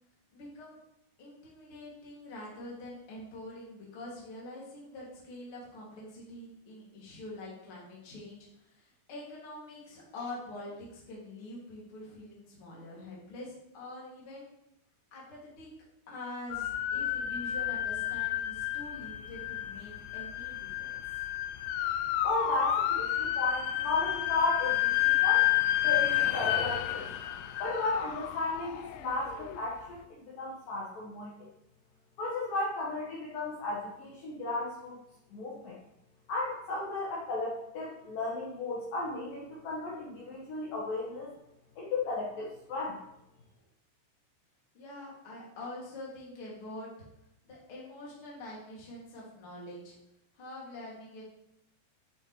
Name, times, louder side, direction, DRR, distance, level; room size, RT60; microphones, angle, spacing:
voice 1, 0.3-0.8 1.2-14.5 15.1-15.7 16.1-21.0 44.7-46.9 47.4-50.0 50.3-51.2, left 1 dB, 35° left, -4 dB, 2.5 m, -45 dB
sound 1, 16.5-29.6, left 13 dB, 80° left, 2.7 m, -30 dB
voice 2, 22.2-25.5 25.8-27.1 27.6-31.5 32.2-35.0 35.3-35.8 36.3-41.3 41.8-43.0, left 2 dB, 60° left, -5 dB, 2.6 m, -34 dB
11.0 x 6.4 x 3.2 m, 0.83 s
omnidirectional pair, 5.3 m